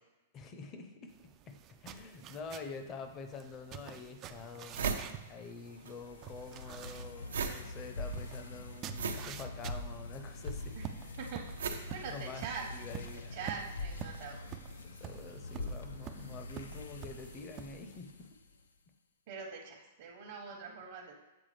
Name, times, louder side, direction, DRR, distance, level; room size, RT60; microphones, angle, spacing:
voice 1, 0.3-4.8 5.3-10.8 12.1-12.4 12.7-13.5 14.8-18.3, left 4 dB, 30° left, 6 dB, 0.7 m, -47 dB
sound 1, 1.1-18.0, right 10 dB, 35° right, 0.3 m, -49 dB
sound 2, 3.5-3.6 4.1-4.2 4.4-6.0 6.2-12.8, right 5 dB, 80° right, 0.6 m, -39 dB
sound 3, 5.2-18.6, left 2 dB, 85° left, 0.5 m, -45 dB
voice 2, 11.9-12.7 13.3-14.4 19.3-21.1, right 5 dB, 55° right, -1 dB, 0.9 m, -43 dB
7.9 x 3.6 x 3.3 m, 1.1 s
hypercardioid pair, 125°, 0 cm